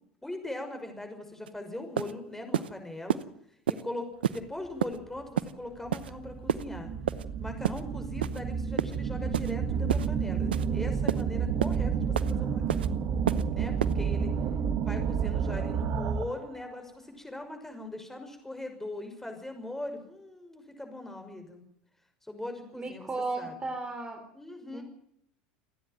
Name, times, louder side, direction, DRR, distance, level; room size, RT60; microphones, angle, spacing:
voice 1, 0.2-3.3 3.7-6.9 7.4-13.0 13.5-14.3 14.8-21.6 22.2-23.1 23.4-23.5 24.3-24.8, left 1 dB, 5° left, 5 dB, 6.1 m, -40 dB
sound 1, 1.5-1.6 2.0-2.1 2.5-2.7 3.1-3.2 3.7-3.8 4.2-4.4 4.8-5.0 5.4-5.5 5.9-6.1 6.5-6.6 7.1-7.2 7.6-7.8 8.2-8.4 8.8-9.0 9.3-9.5 9.9-10.1 10.5-10.7 11.1-11.2 11.6-11.8 12.2-12.3 12.7-12.9 13.3-13.4 13.8-13.9, right 9 dB, 85° right, 0.8 m, -29 dB
sound 2, 5.1-5.2 5.8-16.5, right 6 dB, 45° right, 1.8 m, -30 dB
voice 2, 14.5-15.0 22.8-24.2 24.7-24.8, right 3 dB, 20° right, 5 dB, 3.4 m, -35 dB
28.0 x 10.0 x 9.1 m, 0.72 s
hypercardioid pair, 85°, 5 cm